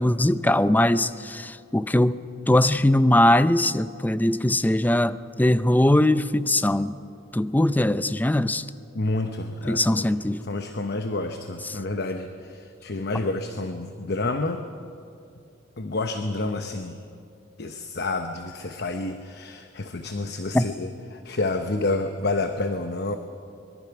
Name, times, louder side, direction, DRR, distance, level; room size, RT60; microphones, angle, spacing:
voice 1, 0.0-2.2 2.5-7.0 7.3-8.7 9.7-10.4 11.7-11.8 20.5-20.6, left 1 dB, 10° left, 14 dB, 0.5 m, -21 dB
voice 2, 8.9-10.0 10.4-14.7 15.8-17.0 17.6-23.2, left 2 dB, 55° left, 7 dB, 1.0 m, -29 dB
24.5 x 22.0 x 6.0 m, 2.5 s
head